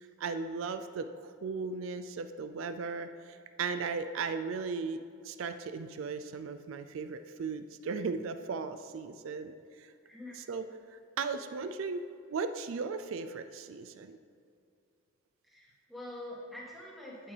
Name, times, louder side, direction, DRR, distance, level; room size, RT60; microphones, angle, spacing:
voice 1, 0.2-9.9 10.4-10.7 10.9-12.0 12.3-14.2, right 4 dB, 80° right, 9 dB, 0.4 m, -37 dB
voice 2, 10.0-10.4 15.4-17.3, left 1 dB, ahead, -6 dB, 1.7 m, -45 dB
8.7 x 8.4 x 3.3 m, 2.4 s
head